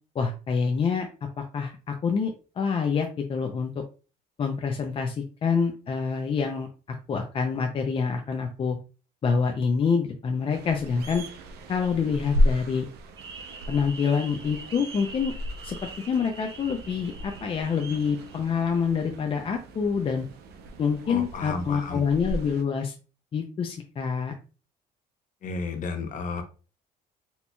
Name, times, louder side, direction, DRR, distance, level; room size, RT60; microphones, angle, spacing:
voice 1, 0.2-1.1 1.4-3.8 4.4-6.7 7.1-8.8 9.2-11.3 11.7-12.9 13.7-15.3 15.6-20.3 20.8-22.9 23.3-24.4, left 6 dB, 35° left, 4 dB, 0.4 m, -26 dB
sound 1, 10.5-22.6, left 1 dB, 70° right, 0.6 m, -33 dB
sound 2, 13.2-18.4, right 3 dB, 30° right, 0.7 m, -45 dB
voice 2, 21.1-22.0 25.4-26.4, left 4 dB, 50° left, 6 dB, 0.8 m, -32 dB
4.2 x 2.8 x 2.2 m, 0.35 s
cardioid pair, 110°, 17 cm